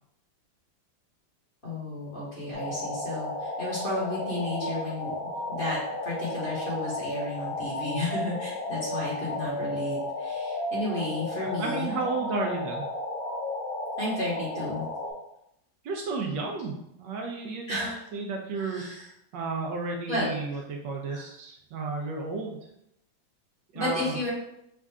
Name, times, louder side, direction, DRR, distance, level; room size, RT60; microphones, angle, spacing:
voice 1, 1.6-5.1 5.5-12.2 14.0-14.8 17.7-18.0 18.5-19.1 20.1-20.6 21.1-21.2 23.7-24.3, left 1 dB, 30° left, -8 dB, 1.3 m, -33 dB
sound 1, 2.5-15.1, left 2 dB, 90° left, 2.1 m, -33 dB
voice 2, 11.4-12.8 15.8-18.8 19.3-22.6 23.7-24.3, right 3 dB, 75° right, 1 dB, 1.3 m, -33 dB
5.4 x 2.5 x 3.5 m, 0.79 s
omnidirectional pair, 2.1 m